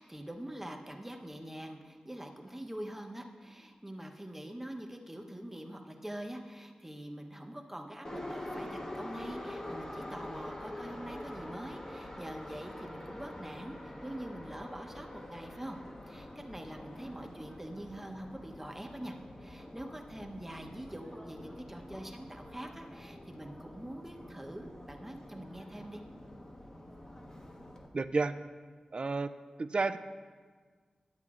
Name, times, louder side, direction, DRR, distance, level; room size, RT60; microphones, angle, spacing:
voice 1, 0.0-15.8 16.1-26.0, right 1 dB, 10° right, 3 dB, 0.9 m, -44 dB
Subway metro underground, 8.0-27.9, left 1 dB, 30° left, 1.1 m, -46 dB
voice 2, 27.9-28.4 28.9-29.3 29.6-30.0, right 3 dB, 50° right, 13 dB, 0.4 m, -30 dB
12.0 x 8.0 x 2.4 m, 1.5 s
cardioid pair, 60°, 2 cm